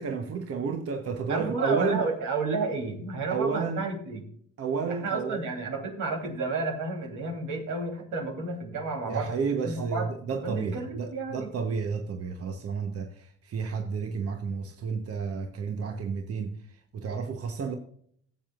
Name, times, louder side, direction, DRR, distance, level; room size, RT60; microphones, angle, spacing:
voice 1, 0.0-2.0 3.3-3.8 4.6-5.4 9.1-17.7, right 5 dB, 50° right, 1.1 m, -31 dB
voice 2, 1.3-4.3 4.9-9.3 9.6-10.1 10.4-11.5, right 3 dB, 85° right, 3.2 m, -31 dB
17.0 x 7.7 x 2.4 m
cardioid pair, 90°, 30 cm